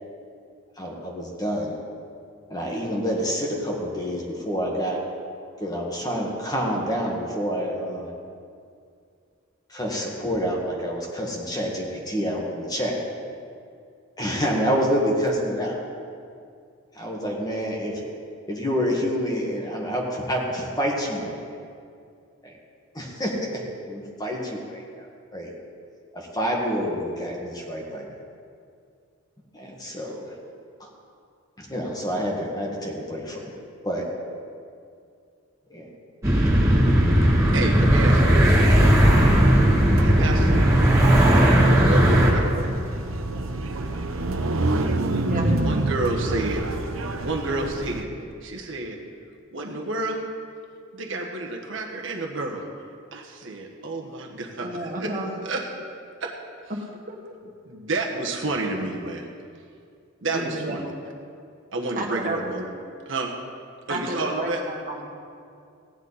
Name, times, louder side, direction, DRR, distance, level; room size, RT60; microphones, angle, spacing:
voice 1, 0.8-1.7 2.5-5.0 5.6-8.1 9.7-13.0 14.2-15.7 16.9-18.1 18.5-21.4 22.4-22.6 22.9-25.5 26.1-28.2 29.5-30.3 30.8-30.9 31.6-33.4 33.8-34.1 35.7-35.9, equal, 20° left, -2 dB, 1.6 m, -28 dB
sound 1, 36.2-42.3, equal, 15° right, 2.2 m, -17 dB
voice 2, 37.5-38.9 40.0-40.9 41.6-42.8 45.5-46.6 47.2-48.1 48.4-49.0 49.5-50.2 50.9-52.6 53.1-55.1 55.4-55.6 56.2-56.3 57.6-59.3 60.2-60.8 61.7-62.7 63.1-63.3 63.9-64.6, right 2 dB, 65° right, 0 dB, 1.3 m, -30 dB
sound 2, 39.0-48.0, right 2 dB, 85° right, 0.9 m, -28 dB
voice 3, 45.1-45.6 54.6-55.3 56.7-56.8 57.1-57.3 60.3-60.9 62.0-62.4 63.9-65.0, right 1 dB, 45° right, -1 dB, 1.7 m, -31 dB
16.5 x 10.5 x 4.2 m, 2.3 s
head